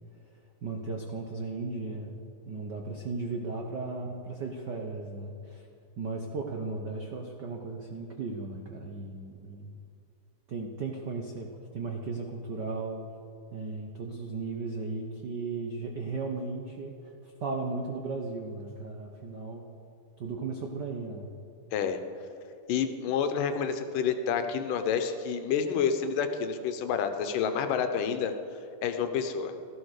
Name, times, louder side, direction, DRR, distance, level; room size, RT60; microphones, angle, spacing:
voice 1, 0.6-2.1 2.5-5.6 6.0-9.7 10.5-13.0 13.5-16.9 17.4-19.6 20.2-21.3, right 3 dB, 90° right, 2 dB, 0.9 m, -36 dB
voice 2, 22.7-28.3 28.8-29.5, left 7 dB, 90° left, 7 dB, 2.6 m, -29 dB
16.0 x 13.5 x 6.6 m, 2.6 s
omnidirectional pair, 3.7 m